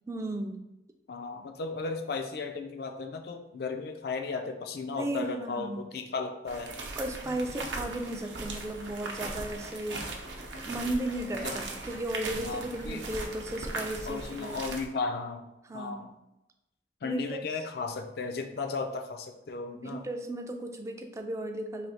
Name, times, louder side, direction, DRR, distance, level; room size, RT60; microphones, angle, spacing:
voice 1, 0.1-0.7 4.9-5.8 7.0-10.0 10.7-14.6 15.7-16.1 17.0-17.4 19.8-21.9, right 1 dB, 15° right, 4 dB, 0.3 m, -35 dB
voice 2, 1.1-6.8 11.4-11.6 12.4-13.1 14.1-15.4 15.7-16.1 17.0-20.1, left 4 dB, 55° left, 6 dB, 0.4 m, -35 dB
sound 1, 6.5-14.9, right 2 dB, 85° right, 0.6 m, -38 dB
3.2 x 2.7 x 4.1 m, 0.91 s
head